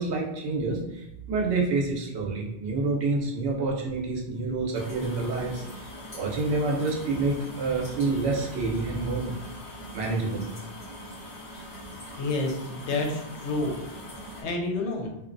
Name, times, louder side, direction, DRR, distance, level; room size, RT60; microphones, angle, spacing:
voice 1, 0.0-5.9 6.1-9.3 9.9-10.4, right 3 dB, 80° right, -1 dB, 1.0 m, -28 dB
sound 1, 4.7-14.4, equal, 30° left, 0.9 m, -42 dB
voice 2, 12.2-13.7 14.4-15.1, left 2 dB, 85° left, 2 dB, 0.9 m, -29 dB
3.0 x 2.4 x 2.5 m, 0.88 s
omnidirectional pair, 1.1 m